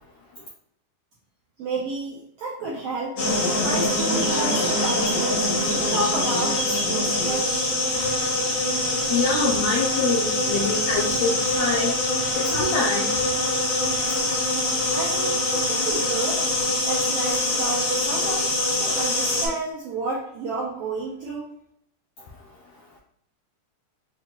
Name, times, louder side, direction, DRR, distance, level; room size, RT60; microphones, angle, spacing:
voice 1, 1.6-3.2 3.6-7.7 14.9-15.4 15.7-16.4 16.9-18.5 18.8-21.5, right 3 dB, 80° right, -4 dB, 1.3 m, -31 dB
sound 1, 3.2-19.5, left 1 dB, 70° left, 1.1 m, -24 dB
voice 2, 9.0-13.2 13.7-13.8 14.1-14.2, left 4 dB, 85° left, -4 dB, 1.4 m, -26 dB
5.6 x 2.4 x 2.9 m, 0.71 s
omnidirectional pair, 3.6 m